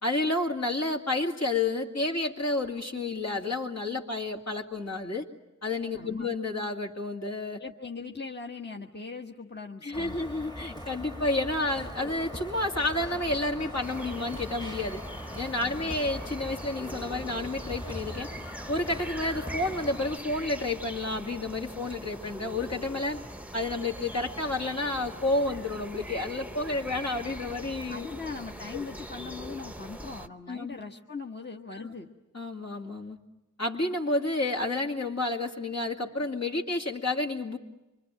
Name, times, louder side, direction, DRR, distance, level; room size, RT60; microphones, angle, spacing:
voice 1, 0.0-5.3 5.6-7.6 9.8-15.0 15.4-18.3 18.7-23.2 23.5-28.1 30.5-30.8 31.8-31.9 32.3-33.2 33.6-37.6, left 2 dB, 55° left, 1 dB, 2.5 m, -30 dB
voice 2, 5.9-6.3 7.6-10.3 15.6-16.0 27.9-32.1, left 4 dB, 35° left, 1 dB, 1.3 m, -40 dB
sound 1, 9.9-20.2, equal, 15° left, 1.4 m, -41 dB
sound 2, 13.8-30.3, right 1 dB, 5° right, 0.9 m, -42 dB
26.5 x 24.0 x 8.9 m, 1.0 s
wide cardioid pair, 55°, 31 cm